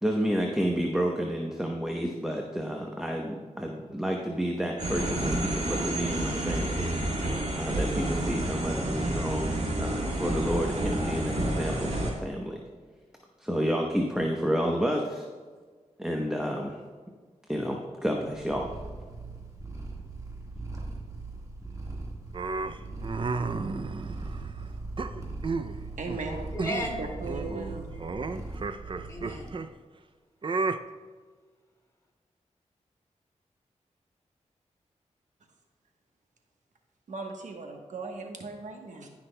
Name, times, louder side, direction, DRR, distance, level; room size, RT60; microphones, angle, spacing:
voice 1, 0.0-7.2 7.5-9.5 9.8-12.6 13.4-15.3 16.0-16.8 17.5-18.7, equal, 5° right, 1 dB, 0.9 m, -30 dB
sound 1, 4.8-12.1, right 1 dB, 70° right, 2.5 m, -29 dB
Purr, 18.3-29.5, right 3 dB, 25° right, 1.7 m, -40 dB
sound 2, 22.3-24.5 25.0-25.8 26.1-26.3 26.6-27.0 27.2-29.7 30.4-30.8, right 4 dB, 40° right, 0.5 m, -32 dB
voice 2, 26.0-26.5 27.0-27.9 37.1-39.1, right 3 dB, 85° right, 2 dB, 1.1 m, -37 dB
voice 3, 26.5-27.2 27.4-27.7 27.9-28.6 29.1-29.5, left 1 dB, 25° left, -1 dB, 2.3 m, -37 dB
17.5 x 6.0 x 2.2 m, 1.5 s
cardioid pair, 70°, 13 cm